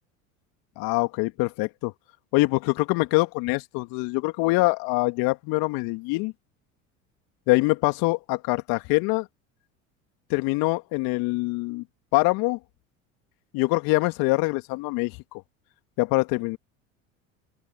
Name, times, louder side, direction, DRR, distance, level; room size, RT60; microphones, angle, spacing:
voice 1, 0.8-1.9 2.3-6.3 7.5-9.3 10.3-11.8 12.1-12.6 13.5-15.4 16.0-16.6, left 24 dB, 60° left, 2.5 m, -24 dB
open air
hypercardioid pair, 75°, 40 cm